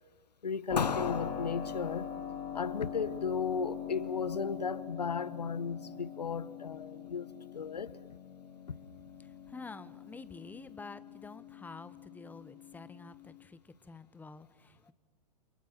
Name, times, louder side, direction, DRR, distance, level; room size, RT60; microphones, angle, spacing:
voice 1, 0.4-2.1 2.5-7.9 8.7-8.8, left 5 dB, 85° left, 1.0 m, -34 dB
Keyboard (musical), 0.7-13.4, left 8 dB, 40° left, 3.2 m, -43 dB
voice 2, 9.5-14.9, left 3 dB, 10° left, 1.0 m, -49 dB
30.0 x 28.0 x 6.0 m
hypercardioid pair, 100°, 21 cm